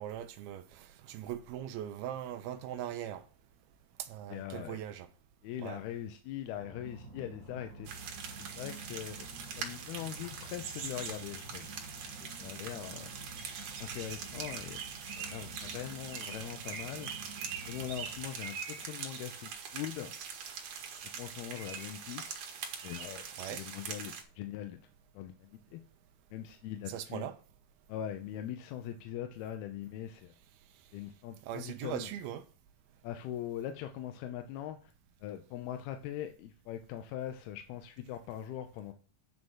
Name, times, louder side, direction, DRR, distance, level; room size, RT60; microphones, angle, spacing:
voice 1, 0.0-3.2 4.0-5.1 5.6-5.8 23.4-23.6 26.9-27.4 31.4-32.4, right 11 dB, 80° right, 2.3 m, -40 dB
voice 2, 4.3-4.8 5.4-7.9 8.6-9.3 9.6-11.7 12.2-13.1 13.8-14.9 15.2-17.1 17.7-20.1 21.1-22.4 22.8-24.8 25.1-25.8 26.3-27.3 27.9-30.3 30.9-32.1 33.0-34.9 35.2-38.9, left 11 dB, 75° left, 2.5 m, -41 dB
sound 1, 6.6-18.2, right 2 dB, 35° right, 1.2 m, -50 dB
sound 2, 7.8-24.2, right 6 dB, 60° right, 2.5 m, -43 dB
9.6 x 5.1 x 6.3 m
omnidirectional pair, 5.0 m